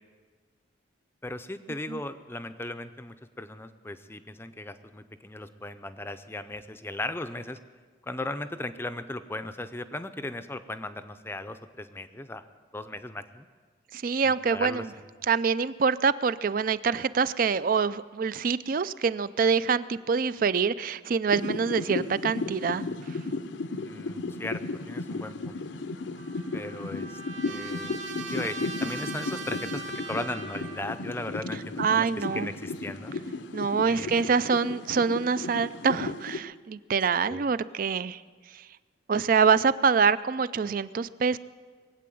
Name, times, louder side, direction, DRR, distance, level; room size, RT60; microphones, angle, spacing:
voice 1, 1.2-7.6 8.0-12.4 12.7-13.5 14.2-15.1 23.8-25.6 26.5-27.9 28.3-33.2 33.9-34.2 37.3-37.5, left 2 dB, 10° left, 10 dB, 0.5 m, -37 dB
voice 2, 13.9-14.9 15.3-23.2 31.8-32.5 33.5-38.2 38.5-38.6 39.1-41.4, right 5 dB, 45° right, 16 dB, 0.4 m, -25 dB
sound 1, 21.3-36.4, left 3 dB, 65° left, 0.7 m, -35 dB
Trumpet, 26.2-31.0, right 3 dB, 70° right, 2.1 m, -40 dB
22.0 x 8.6 x 7.6 m, 1.5 s
head